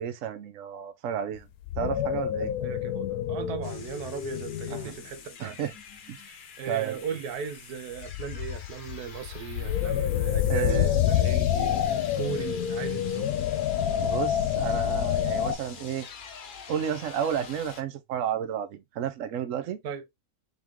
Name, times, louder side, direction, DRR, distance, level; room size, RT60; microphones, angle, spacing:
voice 1, 0.0-1.5 1.8-2.5 4.7-4.9 5.4-5.7 6.1-6.2 6.7-6.9 10.5-11.0 14.0-16.1 16.7-19.8, right 9 dB, 65° right, 1.0 m, -31 dB
sound 1, 1.4-1.5 1.6-5.1 5.6-6.0 8.0-15.6, left 10 dB, 75° left, 1.0 m, -27 dB
voice 2, 2.3-5.6 6.2-13.4 19.8-20.0, right 7 dB, 80° right, 1.2 m, -37 dB
sound 2, 3.6-17.8, left 6 dB, 50° left, 0.6 m, -46 dB
3.7 x 3.6 x 2.9 m
omnidirectional pair, 1.6 m